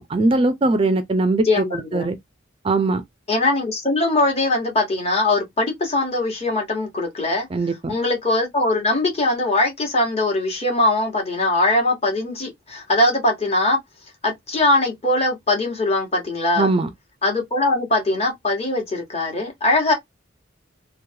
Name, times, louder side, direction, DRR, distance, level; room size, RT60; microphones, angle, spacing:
voice 1, 0.0-2.2 2.6-3.0 7.5-7.9 16.6-16.9, right 2 dB, 30° right, 0.4 m, -20 dB
voice 2, 1.4-2.1 3.3-7.5 7.9-13.8 14.2-16.7 17.2-19.9, left 2 dB, 30° left, 1.1 m, -21 dB
3.0 x 2.1 x 2.6 m
head